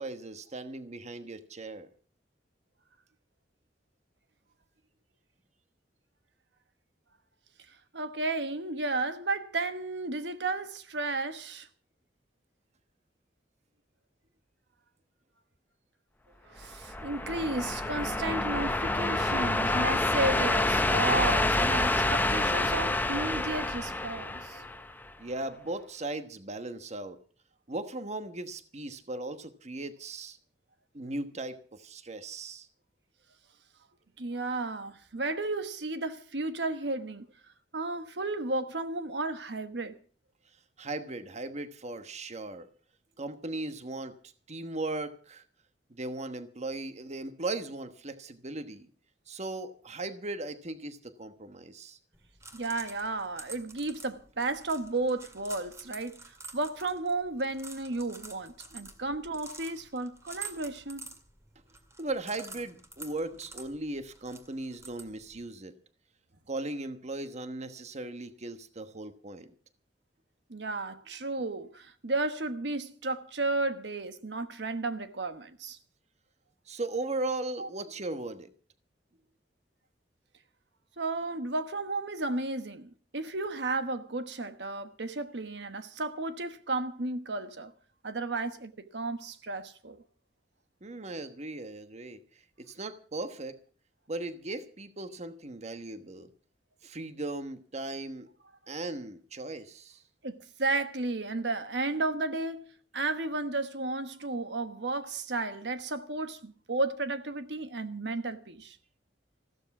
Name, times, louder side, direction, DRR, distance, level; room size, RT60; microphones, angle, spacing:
voice 1, 0.0-1.9 25.2-27.2 27.7-30.4 30.9-32.7 40.8-42.7 43.2-44.1 44.5-45.4 45.9-48.9 49.3-52.0 62.0-65.7 66.5-69.5 76.7-78.5 90.8-92.2 92.6-93.6 94.1-96.3 96.8-98.3 98.7-100.0, right 2 dB, 40° right, 1.2 m, -37 dB
voice 2, 7.7-11.7 16.4-24.7 34.2-37.3 37.7-40.0 52.5-61.1 70.5-75.8 77.6-77.7 81.0-87.7 88.0-90.0 100.2-108.8, right 2 dB, 75° right, 1.2 m, -33 dB
sound 1, 16.6-25.1, left 2 dB, 10° left, 0.6 m, -28 dB
sound 2, 52.1-65.4, right 4 dB, 15° right, 2.2 m, -48 dB
15.0 x 13.0 x 5.9 m
head